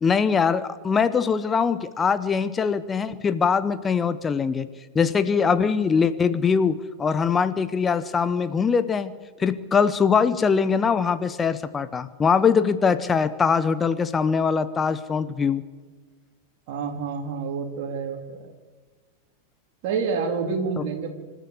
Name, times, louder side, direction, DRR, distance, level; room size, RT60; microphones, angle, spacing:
voice 1, 0.0-4.7 4.9-9.1 9.4-15.6, left 6 dB, 20° left, 13 dB, 0.9 m, -22 dB
voice 2, 16.7-18.5 19.8-21.1, right 5 dB, 45° right, 1 dB, 3.5 m, -28 dB
26.5 x 13.5 x 8.2 m, 1.4 s
figure-of-eight pair, 90°, 0 cm